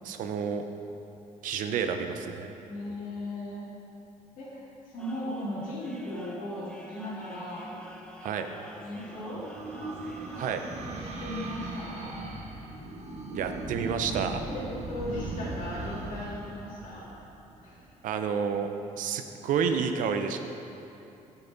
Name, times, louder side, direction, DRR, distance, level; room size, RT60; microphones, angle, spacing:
voice 1, 0.1-0.6 1.4-2.5 8.2-8.5 10.3-10.6 13.4-14.4 18.0-18.7 19.0-20.4, right 6 dB, 70° right, 7 dB, 0.7 m, -29 dB
voice 2, 2.7-3.7 4.4-7.7 8.8-9.4 10.9-12.1 14.5-17.1 17.6-17.9, left 1 dB, 75° left, -7 dB, 2.3 m, -37 dB
sound 1, 5.0-10.6, left 1 dB, 5° left, 0.8 m, -48 dB
sound 2, 8.2-17.8, right 2 dB, 50° right, 1.2 m, -39 dB
14.0 x 5.7 x 4.0 m, 2.9 s
cardioid pair, 120°, 14 cm